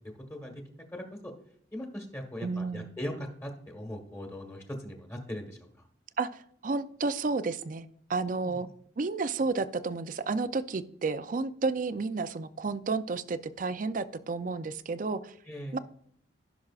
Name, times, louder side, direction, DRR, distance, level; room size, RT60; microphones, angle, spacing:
voice 1, 0.3-0.6 0.9-1.3 1.7-5.9 8.4-8.6 15.5-15.8, equal, 15° left, 3 dB, 1.3 m, -40 dB
voice 2, 2.4-2.9 6.2-8.7 9.0-15.3 15.7-15.8, right 4 dB, 45° right, 13 dB, 0.4 m, -31 dB
15.0 x 6.2 x 2.4 m, 0.65 s
head